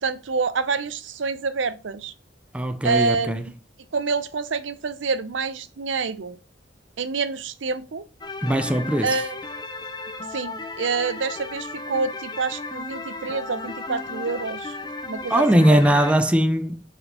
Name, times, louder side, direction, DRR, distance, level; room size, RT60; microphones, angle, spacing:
voice 1, 0.0-2.1 2.8-3.4 3.9-6.4 7.0-8.0 9.0-9.4 10.3-14.8 15.1-16.0, right 4 dB, 80° right, 0.6 m, -27 dB
voice 2, 2.5-3.5 8.4-9.2 15.3-16.8, equal, 5° right, 0.3 m, -20 dB
sound 1, 8.2-16.2, left 3 dB, 20° left, 0.7 m, -35 dB
4.5 x 4.4 x 4.9 m
head